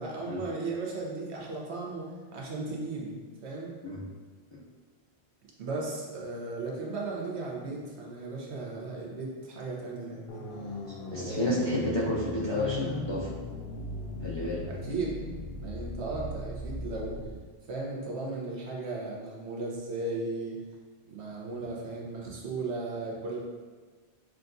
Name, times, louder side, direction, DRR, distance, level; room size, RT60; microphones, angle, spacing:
voice 1, 0.0-3.7 5.6-10.4 11.1-11.9 14.7-15.2 15.5-17.2 17.7-20.6 21.1-23.4, right 3 dB, 85° right, -2 dB, 1.1 m, -36 dB
sound 1, 10.3-17.3, left 2 dB, 75° left, 0.8 m, -38 dB
voice 2, 11.1-13.3 14.2-14.6, left 1 dB, 45° left, -6 dB, 0.3 m, -30 dB
6.0 x 2.3 x 2.5 m, 1.4 s
omnidirectional pair, 1.1 m